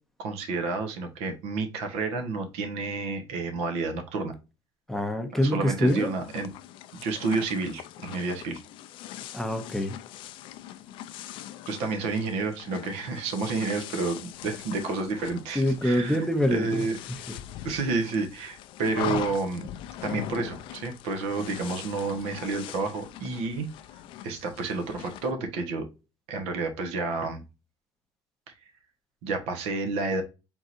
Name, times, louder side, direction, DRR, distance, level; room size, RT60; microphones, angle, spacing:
voice 1, 0.2-4.3 5.4-6.5 6.9-8.6 11.7-16.2 16.5-17.0 17.6-19.7 20.0-23.7 24.2-25.9 26.3-27.4 28.5-28.6 29.2-30.2, right 3 dB, 75° right, 1.3 m, -30 dB
voice 2, 4.9-6.1 9.3-10.0 14.7-14.8 15.5-16.8 17.3-17.4, equal, 5° left, 0.6 m, -25 dB
sound 1, 5.9-25.3, left 12 dB, 55° left, 0.4 m, -41 dB
4.5 x 3.8 x 2.6 m
cardioid pair, 170°, 11 cm